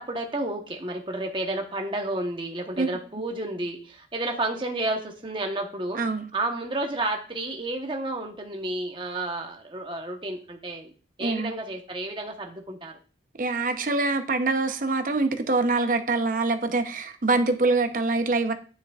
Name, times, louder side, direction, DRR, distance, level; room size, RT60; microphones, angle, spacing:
voice 1, 0.0-10.9 11.2-13.0, right 2 dB, 30° right, 1.0 m, -31 dB
voice 2, 6.0-6.3 11.2-11.5 13.4-18.5, right 3 dB, 50° right, 0.7 m, -24 dB
9.8 x 5.7 x 2.4 m
head